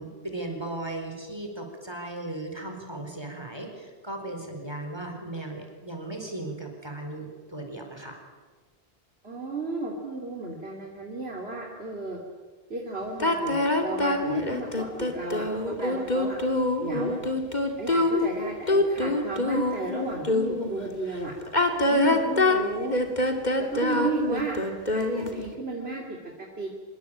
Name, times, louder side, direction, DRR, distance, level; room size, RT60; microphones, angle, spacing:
voice 1, 0.0-8.2, right 2 dB, 25° right, 3 dB, 4.7 m, -37 dB
voice 2, 9.2-12.2 12.7-16.4 16.8-17.2 17.8-21.3 21.9-22.9 23.6-24.6 24.9-26.0 26.6-26.7, right 3 dB, 80° right, -1 dB, 3.2 m, -33 dB
sound 1, 13.2-20.7 21.4-25.4, left 2 dB, 45° left, 2.8 m, -25 dB
26.0 x 22.0 x 8.9 m, 1.4 s
omnidirectional pair, 1.0 m